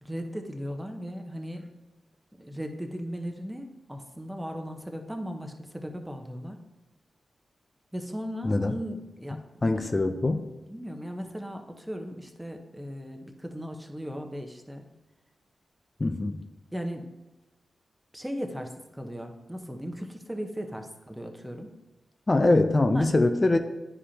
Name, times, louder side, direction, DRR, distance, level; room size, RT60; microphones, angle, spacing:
voice 1, 0.0-1.7 2.3-6.6 7.9-10.0 10.7-14.9 16.7-17.1 18.1-21.8 22.9-23.1, equal, 5° right, 4 dB, 1.0 m, -37 dB
voice 2, 9.6-10.5 16.0-16.4 22.3-23.6, left 2 dB, 35° left, 7 dB, 0.5 m, -23 dB
9.9 x 4.9 x 2.9 m, 1.0 s
cardioid pair, 50°, 0 cm